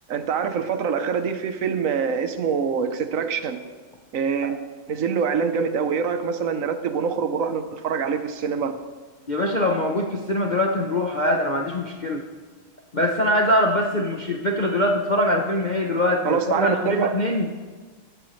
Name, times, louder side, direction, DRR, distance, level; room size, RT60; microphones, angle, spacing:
voice 1, 0.1-3.6 4.1-4.6 4.9-8.8 16.2-17.1, right 6 dB, 55° right, 9 dB, 1.0 m, -25 dB
voice 2, 9.3-12.2 12.9-17.5, left 1 dB, 85° left, 1 dB, 0.4 m, -23 dB
19.0 x 13.0 x 3.2 m, 1.4 s
omnidirectional pair, 2.4 m